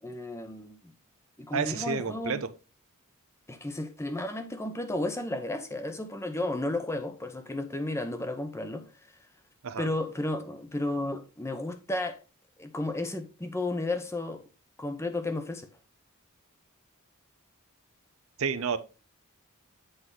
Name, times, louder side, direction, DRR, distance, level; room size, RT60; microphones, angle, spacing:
voice 1, 0.0-0.9 1.4-2.4 3.5-8.9 9.8-12.2 12.6-14.4 14.8-15.7, left 2 dB, 10° left, 0.8 m, -33 dB
voice 2, 1.5-2.5 9.6-9.9 18.4-18.8, right 5 dB, 65° right, 0.6 m, -30 dB
7.9 x 4.7 x 3.8 m
head